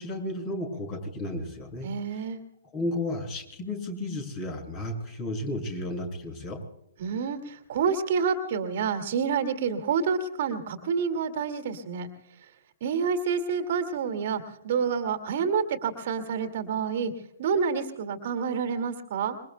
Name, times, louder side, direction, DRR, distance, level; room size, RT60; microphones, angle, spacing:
voice 1, 0.0-2.3 2.7-6.6, left 1 dB, 25° left, 5 dB, 6.7 m, -33 dB
voice 2, 1.8-2.4 7.0-12.1 12.8-17.1 17.4-19.4, right 6 dB, 45° right, 7 dB, 2.2 m, -28 dB
27.0 x 23.5 x 2.3 m, 0.83 s
figure-of-eight pair, 120°, 0 cm